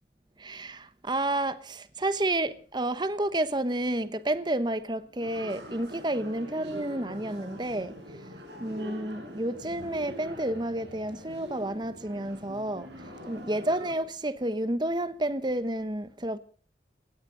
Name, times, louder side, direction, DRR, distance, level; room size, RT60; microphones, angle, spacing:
voice 1, 0.4-7.9 8.6-12.9 13.3-16.4, right 1 dB, 25° right, 1.0 m, -30 dB
sound 1, 5.2-13.9, equal, 75° right, 6.4 m, -44 dB
19.5 x 17.5 x 3.9 m
head